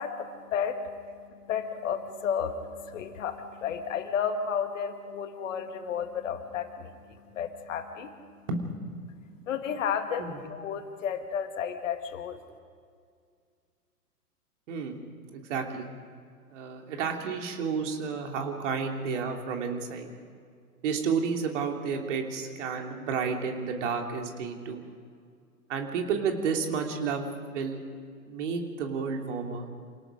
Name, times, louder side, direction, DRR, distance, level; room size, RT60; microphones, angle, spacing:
voice 1, 0.0-8.5 9.1-12.4, left 7 dB, 55° left, 7 dB, 2.2 m, -33 dB
voice 2, 14.7-15.0 15.3-15.9 16.5-20.1 20.8-24.8 25.7-27.8 28.3-29.7, right 5 dB, 50° right, 3 dB, 3.1 m, -31 dB
27.5 x 18.5 x 5.2 m, 2.1 s
figure-of-eight pair, 110°, 45 cm